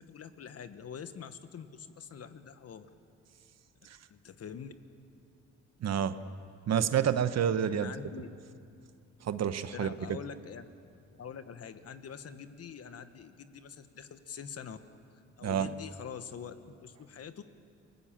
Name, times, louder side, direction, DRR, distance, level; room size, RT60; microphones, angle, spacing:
voice 1, 0.0-2.9 4.1-4.7 7.7-8.3 9.7-10.6 11.1-14.8 15.4-17.4, left 7 dB, 55° left, 10 dB, 1.4 m, -45 dB
voice 2, 5.8-6.2 6.7-7.9 9.2-10.2 15.4-15.7, right 8 dB, 60° right, 12 dB, 1.1 m, -29 dB
29.5 x 19.0 x 7.5 m, 2.4 s
cardioid pair, 90°, 30 cm